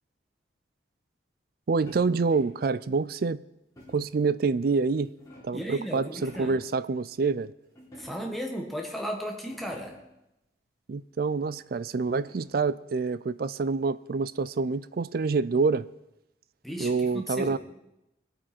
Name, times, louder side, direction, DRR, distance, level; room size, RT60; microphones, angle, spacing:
voice 1, 1.7-3.4 3.9-5.1 5.4-7.5 10.9-15.9 16.8-17.6, right 4 dB, 50° right, 0.4 m, -27 dB
sound 1, 1.9-2.7 3.8-4.2 4.8-5.7 6.0-6.7 7.7-8.5 9.0-9.1 9.4-10.1 11.5-12.7, equal, 15° left, 4.4 m, -51 dB
voice 2, 5.5-6.5 8.0-10.0 16.6-17.6, equal, ahead, 1.6 m, -35 dB
20.5 x 8.7 x 4.4 m
head